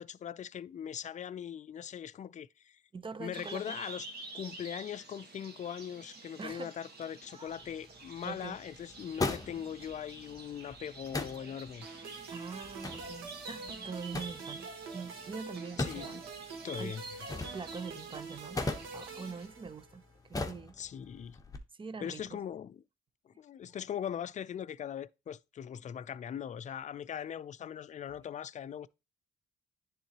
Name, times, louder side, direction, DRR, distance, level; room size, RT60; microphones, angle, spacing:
voice 1, 0.0-2.8 3.2-4.1 4.3-12.3 15.8-16.2 16.6-17.0 20.8-21.4 22.0-22.8 23.3-28.9, left 9 dB, 40° left, 0.4 m, -40 dB
voice 2, 2.9-3.8 6.4-6.7 7.3-7.6 8.2-8.6 12.3-16.2 16.8-16.9 17.5-20.8 21.8-22.4 28.0-28.1, right 5 dB, 25° right, 0.6 m, -44 dB
sound 1, 3.3-19.5, right 3 dB, 55° right, 1.5 m, -49 dB
sound 2, 7.5-21.6, left 3 dB, 15° left, 1.0 m, -42 dB
sound 3, 11.8-20.1, right 4 dB, 85° right, 1.5 m, -46 dB
10.0 x 3.7 x 2.9 m
cardioid pair, 90°, 20 cm